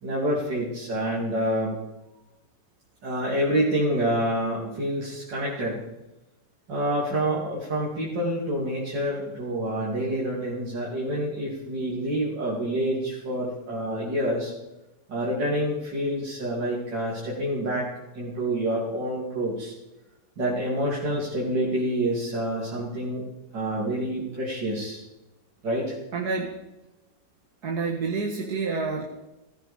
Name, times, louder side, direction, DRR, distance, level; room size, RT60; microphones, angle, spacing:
voice 1, 0.0-1.8 3.0-5.8 6.7-14.5 15.1-17.8 18.1-19.7 20.4-23.2 23.5-25.0 25.6-25.9, right 1 dB, 85° right, -5 dB, 3.7 m, -27 dB
voice 2, 26.1-26.6 27.6-29.0, right 4 dB, 65° right, 0 dB, 2.1 m, -28 dB
17.0 x 15.0 x 5.1 m, 0.99 s
omnidirectional pair, 1.9 m